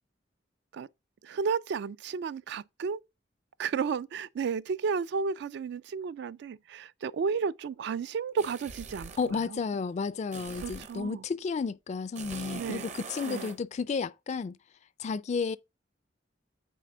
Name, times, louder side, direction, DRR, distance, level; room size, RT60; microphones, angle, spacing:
voice 1, 1.2-3.0 3.6-9.6 10.6-11.2 12.5-12.9 13.2-13.5, right 5 dB, 65° right, 0.3 m, -33 dB
sound 1, 8.4-9.3 10.3-11.0 12.1-13.6, right 4 dB, 40° right, 0.7 m, -42 dB
voice 2, 9.2-14.5 15.0-15.6, left 5 dB, 40° left, 0.3 m, -32 dB
9.2 x 4.3 x 3.7 m
head